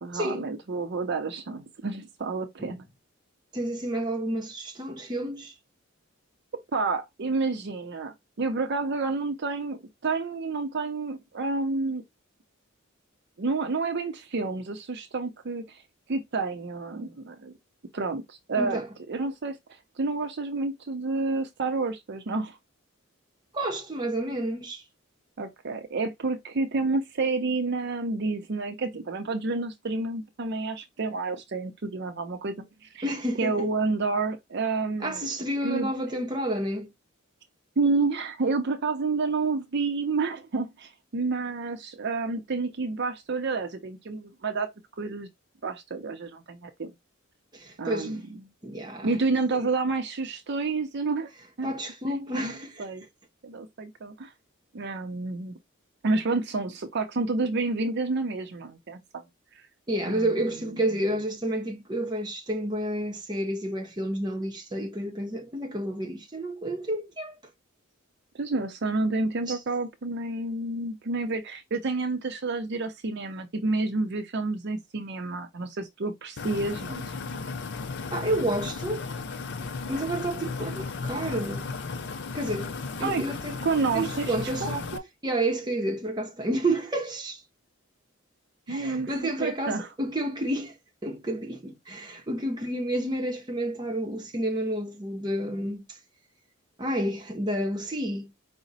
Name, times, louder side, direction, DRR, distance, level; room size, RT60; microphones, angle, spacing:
voice 1, 0.0-2.9 6.7-12.0 13.4-15.8 16.1-17.5 17.9-18.8 19.1-19.6 20.0-22.6 25.4-33.1 33.4-35.3 35.6-35.9 37.8-44.7 45.0-45.3 45.6-46.9 47.8-48.2 49.0-51.3 51.6-51.7 52.3-52.5 52.8-53.0 53.4-54.3 54.7-55.6 56.0-59.2 60.1-60.3 60.7-60.8 68.3-77.0 83.0-83.2 83.6-84.3 84.6-85.0 88.7-89.1 89.4-89.9, right 3 dB, 55° right, 0.6 m, -29 dB
voice 2, 3.5-5.5 18.6-18.9 23.5-24.8 33.0-33.7 35.0-36.9 47.5-48.2 48.6-49.1 51.6-52.8 59.9-67.3 69.5-69.6 78.1-79.0 79.9-81.7 82.3-82.7 83.0-83.6 83.9-84.9 85.2-87.4 88.7-90.7 91.0-95.8 96.8-98.3, right 1 dB, 20° right, 0.8 m, -30 dB
sound 1, 76.4-85.0, left 4 dB, 55° left, 0.5 m, -35 dB
4.9 x 2.1 x 4.0 m
head